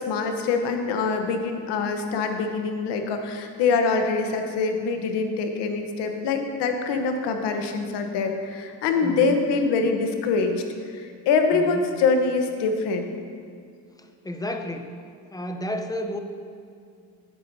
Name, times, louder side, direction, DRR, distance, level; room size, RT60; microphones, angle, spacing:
voice 1, 0.0-10.5 10.9-13.1, left 4 dB, 75° left, 5 dB, 1.0 m, -24 dB
voice 2, 9.0-9.4 11.5-11.8 14.0-15.0 15.3-16.2, left 1 dB, 10° left, 6 dB, 0.6 m, -32 dB
10.5 x 8.4 x 2.7 m, 2.3 s
supercardioid pair, 85°, 41 cm